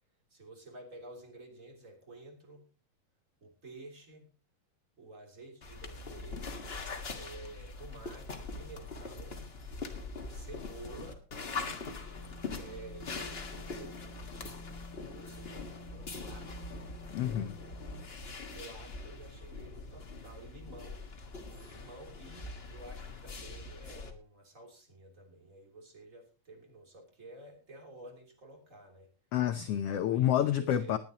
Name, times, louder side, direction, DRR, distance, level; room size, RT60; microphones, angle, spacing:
voice 1, 0.3-2.6 3.4-4.3 5.0-6.5 7.1-9.5 10.3-11.3 12.6-14.2 15.1-16.6 18.5-21.0 21.6-29.1 30.0-31.0, right 2 dB, 25° right, 3 dB, 3.5 m, -51 dB
sound 1, 5.6-24.1, left 3 dB, 50° left, 0.7 m, -43 dB
sound 2, 11.7-18.2, left 1 dB, 5° left, 4.5 m, -53 dB
voice 2, 17.1-17.5 29.3-31.0, left 11 dB, 85° left, 10 dB, 1.3 m, -29 dB
19.0 x 10.5 x 2.9 m, 0.34 s
omnidirectional pair, 3.7 m